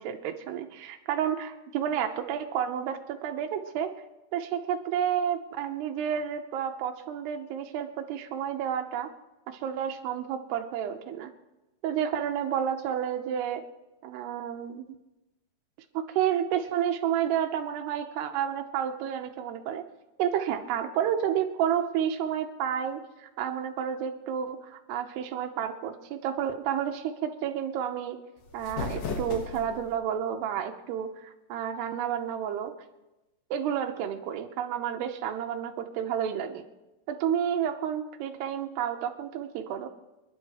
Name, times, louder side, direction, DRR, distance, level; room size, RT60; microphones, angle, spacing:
voice 1, 0.0-3.9 4.3-9.1 9.5-11.3 11.8-13.6 14.0-14.8 15.9-19.8 20.2-28.2 28.5-32.8 33.5-36.6 37.1-39.9, right 9 dB, 85° right, 4 dB, 2.9 m, -30 dB
sound 1, 28.4-30.0, left 5 dB, 60° left, 2.0 m, -35 dB
27.5 x 10.5 x 3.1 m, 1.0 s
omnidirectional pair, 4.7 m